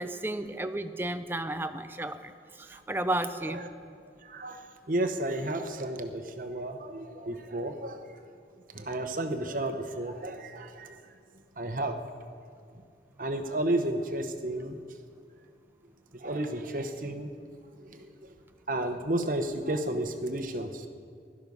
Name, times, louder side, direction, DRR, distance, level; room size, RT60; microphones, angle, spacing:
voice 1, 0.0-2.3 2.6-3.6, right 1 dB, 10° right, 9 dB, 0.5 m, -33 dB
voice 2, 4.2-8.0 8.7-11.0 11.6-12.0 13.2-14.8 16.2-17.3 17.9-18.1 18.7-20.9, right 1 dB, 50° right, 7 dB, 0.9 m, -32 dB
16.5 x 12.5 x 5.4 m, 2.3 s
head